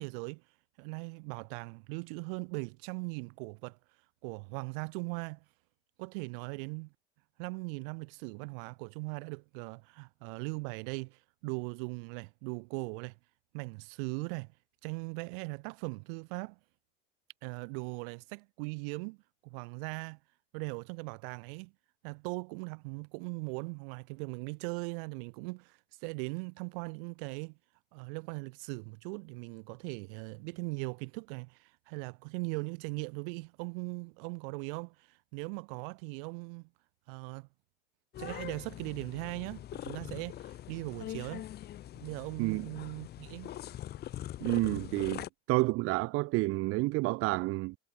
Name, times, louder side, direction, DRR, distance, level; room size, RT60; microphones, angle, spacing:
voice 1, 0.0-5.4 6.0-6.9 7.4-13.2 13.5-14.5 14.8-16.6 17.4-19.2 19.4-20.2 20.5-21.7 22.0-27.6 27.9-36.7 37.1-37.5 38.2-41.5 41.9-43.6, right 34 dB, 65° right, 2.4 m, -39 dB
sound 1, 38.1-45.3, left 12 dB, 35° left, 0.9 m, -43 dB
voice 2, 44.4-47.8, right 22 dB, 50° right, 0.7 m, -30 dB
supercardioid pair, 115°, 29 cm